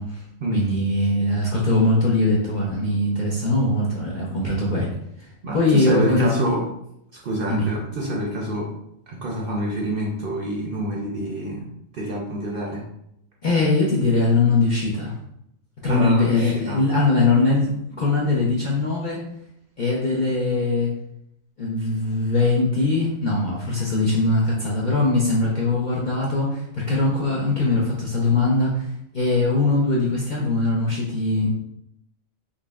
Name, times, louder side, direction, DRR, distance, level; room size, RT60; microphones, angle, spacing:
voice 1, 0.5-4.9 5.2-6.3 7.5-7.7 13.4-15.2 15.8-17.7 18.0-19.3 19.8-20.9 21.6-31.5, left 2 dB, 50° left, -5 dB, 0.5 m, -21 dB
voice 2, 5.4-6.6 7.1-8.7 9.1-11.7 11.9-12.8 15.9-16.8, right 1 dB, 55° right, -2 dB, 0.7 m, -27 dB
3.9 x 3.0 x 2.3 m, 0.77 s
omnidirectional pair, 1.4 m